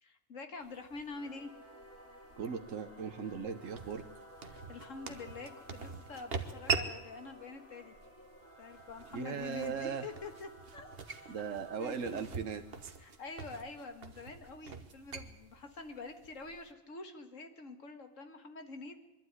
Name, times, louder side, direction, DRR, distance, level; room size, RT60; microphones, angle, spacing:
voice 1, 0.0-1.5 4.5-7.9 8.6-11.4 11.8-12.2 13.0-19.0, left 3 dB, 80° left, 7 dB, 2.1 m, -46 dB
sound 1, 0.6-16.7, right 5 dB, 50° right, 1.4 m, -44 dB
Singing / Musical instrument, 1.0-13.9, right 1 dB, 10° left, 3.0 m, -56 dB
voice 2, 2.4-4.1 9.1-10.1 11.3-12.9, right 6 dB, 80° right, 7 dB, 1.4 m, -38 dB
23.0 x 12.0 x 9.6 m, 1.0 s
omnidirectional pair, 1.3 m